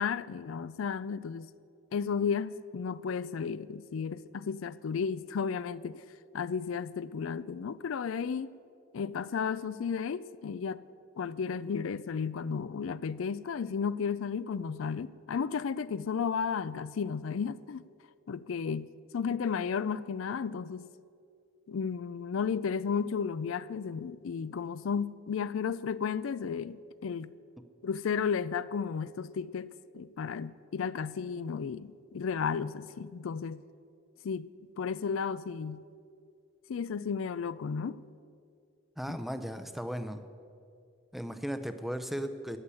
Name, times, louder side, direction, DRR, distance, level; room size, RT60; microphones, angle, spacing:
voice 1, 0.0-1.5 1.9-6.0 6.3-8.6 8.9-10.8 11.2-17.8 18.3-20.9 21.7-27.3 27.8-33.6 34.2-34.5 34.8-35.9 36.7-38.0 39.1-39.2, left 6 dB, 70° left, 0.4 m, -33 dB
voice 2, 39.0-40.2 41.1-42.6, equal, ahead, 0.6 m, -36 dB
14.0 x 9.7 x 8.3 m
head